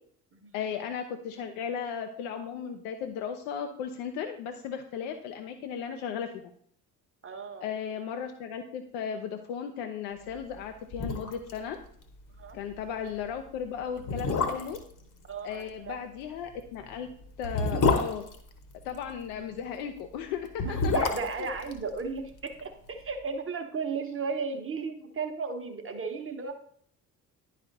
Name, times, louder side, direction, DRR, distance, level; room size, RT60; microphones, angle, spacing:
voice 1, 0.5-6.3 7.6-11.8 12.5-14.8 15.4-17.1 17.4-18.2 18.8-20.9 21.4-21.5, left 7 dB, 60° left, 6 dB, 0.7 m, -36 dB
voice 2, 7.2-7.7 12.4-12.6 15.3-16.0 20.6-26.6, right 4 dB, 25° right, 6 dB, 1.1 m, -35 dB
sound 1, 10.6-10.7 10.9-11.6 11.9-12.0 12.4-12.5 13.2-13.3 14.0-14.9 16.4-19.1 20.4-22.6 22.9-23.0, left 4 dB, 40° left, 1.2 m, -28 dB
10.5 x 5.0 x 2.7 m, 0.63 s
figure-of-eight pair, 50°, 49 cm